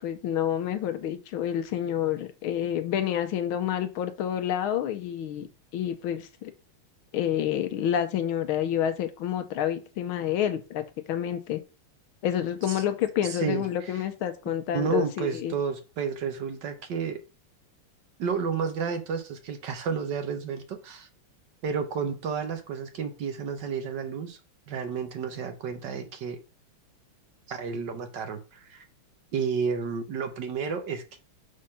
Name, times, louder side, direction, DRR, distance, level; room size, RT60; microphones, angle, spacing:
voice 1, 0.0-5.5 5.7-6.5 7.1-11.6 12.2-15.5, left 10 dB, 75° left, 1.5 m, -28 dB
voice 2, 13.2-14.0 14.7-17.2 18.2-21.1 21.6-24.4 24.7-26.4 27.5-28.8 29.3-31.2, right 6 dB, 60° right, 1.4 m, -31 dB
6.4 x 3.8 x 5.7 m
omnidirectional pair, 2.4 m